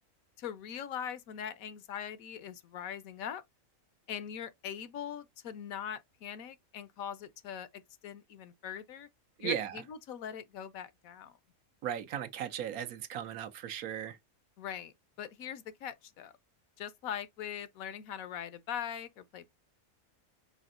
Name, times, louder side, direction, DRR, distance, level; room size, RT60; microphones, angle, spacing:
voice 1, 0.4-3.4 4.1-9.1 9.4-11.4 14.6-16.3 16.8-19.5, left 9 dB, 75° left, 1.1 m, -41 dB
voice 2, 9.4-9.8 11.8-14.2, right 9 dB, 85° right, 1.2 m, -36 dB
5.0 x 4.3 x 2.5 m
omnidirectional pair, 1.5 m